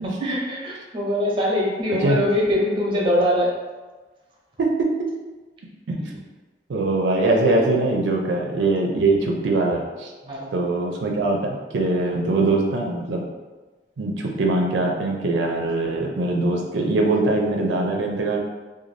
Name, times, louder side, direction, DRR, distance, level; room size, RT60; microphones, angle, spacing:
voice 1, 0.0-3.5 10.2-10.7 12.0-12.2, left 1 dB, 30° right, -3 dB, 0.6 m, -23 dB
voice 2, 6.7-10.1 10.5-13.2 14.0-18.4, right 2 dB, 90° right, 0 dB, 0.4 m, -22 dB
2.6 x 2.2 x 3.2 m, 1.3 s
head